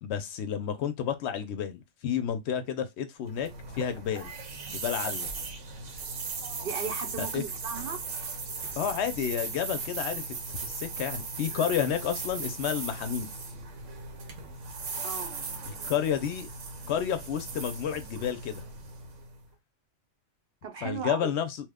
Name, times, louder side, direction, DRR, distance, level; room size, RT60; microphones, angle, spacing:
voice 1, 0.0-3.5 3.7-4.3 4.7-5.3 7.2-7.4 8.8-13.3 15.7-16.5 16.9-18.6 20.8-21.6, left 8 dB, 70° left, 0.8 m, -31 dB
sound 1, 3.2-19.4, right 4 dB, 90° right, 1.1 m, -38 dB
voice 2, 6.6-8.0 15.0-15.3 20.6-21.3, right 6 dB, 60° right, 0.7 m, -36 dB
3.0 x 2.1 x 3.4 m
omnidirectional pair, 1.3 m